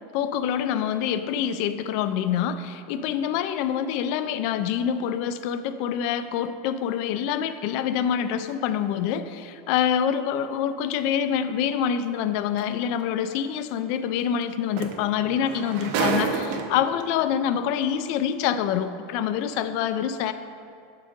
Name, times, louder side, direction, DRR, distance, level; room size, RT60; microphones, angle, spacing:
voice 1, 0.1-20.3, left 9 dB, 50° left, 11 dB, 0.3 m, -26 dB
sound 1, 12.6-12.7 14.4-14.5 14.8-17.0 17.9-18.0, right 5 dB, 50° right, 0.5 m, -28 dB
6.9 x 3.7 x 5.1 m, 2.6 s
supercardioid pair, 160°, 0 cm